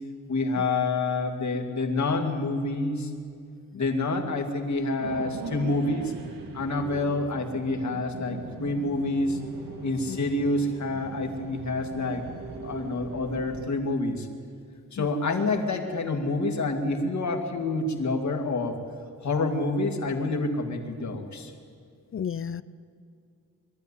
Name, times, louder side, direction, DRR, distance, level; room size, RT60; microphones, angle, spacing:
voice 1, 0.3-3.1 3.7-6.1 6.5-9.4 9.8-12.2 12.6-14.3 14.9-18.8 19.2-21.5, left 2 dB, 55° left, 4 dB, 2.3 m, -28 dB
sound 1, 5.0-13.7, right 4 dB, 80° right, 2.2 m, -40 dB
voice 2, 22.1-22.6, left 8 dB, 40° left, 16 dB, 0.5 m, -33 dB
22.5 x 13.5 x 9.9 m, 2.3 s
wide cardioid pair, 140°, 33 cm